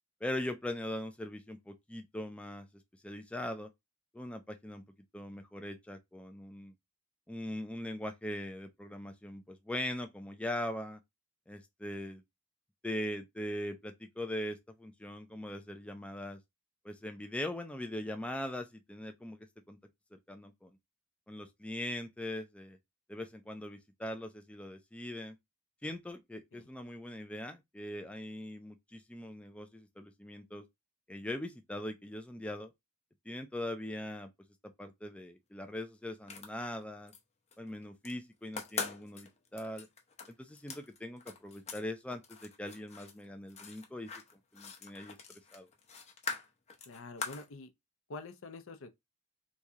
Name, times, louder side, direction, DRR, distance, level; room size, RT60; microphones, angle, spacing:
voice 1, 0.2-2.7 3.0-3.7 4.1-4.8 5.1-6.7 7.3-11.0 11.5-12.2 12.8-16.4 16.8-19.4 19.7-19.8 20.1-20.8 21.3-22.8 23.1-25.4 25.8-30.6 31.1-32.7 33.3-34.3 34.6-37.1 37.6-39.9 40.4-44.1 44.5-45.2 45.5-45.7, left 1 dB, 5° left, 0.4 m, -41 dB
sound 1, 36.1-37.2 37.5-38.1 38.5-41.8 42.1-47.5, left 5 dB, 30° left, 0.7 m, -43 dB
voice 2, 46.9-47.7 48.1-48.9, left 3 dB, 65° left, 0.6 m, -46 dB
3.1 x 2.7 x 3.5 m
head